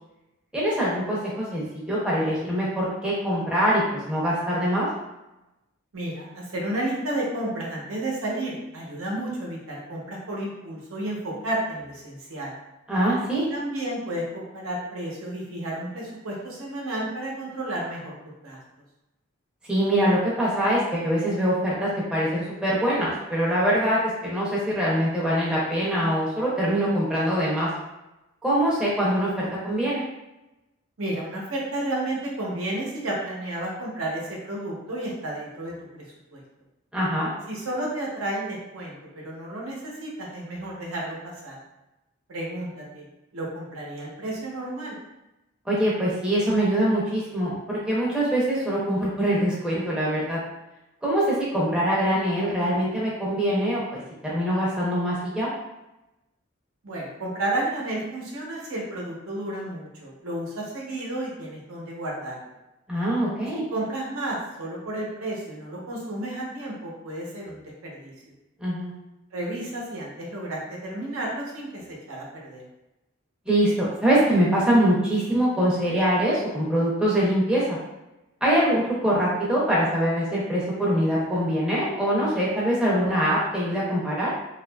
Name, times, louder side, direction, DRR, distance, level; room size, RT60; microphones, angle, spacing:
voice 1, 0.5-4.9 12.9-13.5 19.7-27.7 28.4-30.0 36.9-37.3 45.7-50.4 51.0-53.8 54.2-55.5 62.9-63.6 68.6-68.9 73.5-77.8 78.4-84.3, equal, 5° right, -7 dB, 0.5 m, -23 dB
voice 2, 5.9-12.5 13.5-18.1 18.4-18.6 31.0-35.7 36.3-36.4 37.5-39.0 39.2-41.6 42.3-43.0 43.3-44.9 56.8-62.5 63.7-68.1 69.3-71.7 72.1-72.6, right 1 dB, 85° right, -3 dB, 0.7 m, -32 dB
2.7 x 2.3 x 2.2 m, 0.97 s
head